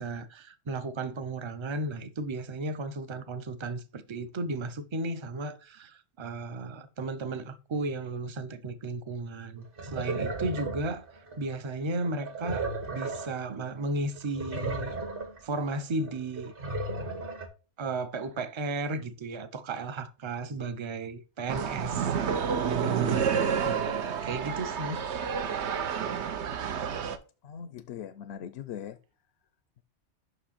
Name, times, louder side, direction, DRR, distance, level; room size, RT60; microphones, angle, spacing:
voice 1, 0.0-11.1 11.4-15.0 15.4-16.5 17.8-25.0, right 2 dB, 35° right, 0.5 m, -35 dB
sound 1, 9.6-11.5 12.0-13.5 13.8-13.9 14.1-15.4 15.9-17.5, right 2 dB, 50° right, 1.6 m, -35 dB
sound 2, 21.5-27.2, right 7 dB, 70° right, 1.0 m, -29 dB
voice 2, 27.4-29.0, left 9 dB, 65° left, 0.8 m, -40 dB
5.8 x 5.0 x 4.1 m
omnidirectional pair, 1.2 m